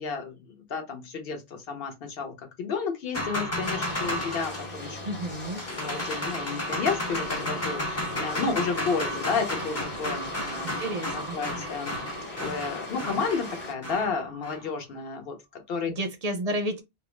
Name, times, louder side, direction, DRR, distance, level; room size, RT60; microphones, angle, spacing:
voice 1, 0.0-5.0 5.5-10.7 11.1-12.0 12.4-15.9, left 5 dB, 70° left, 0.9 m, -32 dB
sound 1, 3.1-14.7, left 1 dB, 20° left, 0.4 m, -33 dB
sound 2, 3.6-13.7, left 2 dB, 50° left, 1.1 m, -39 dB
voice 2, 5.0-5.6 10.8-11.4 15.9-16.8, right 1 dB, 50° right, 0.5 m, -31 dB
2.4 x 2.1 x 3.0 m
omnidirectional pair, 1.1 m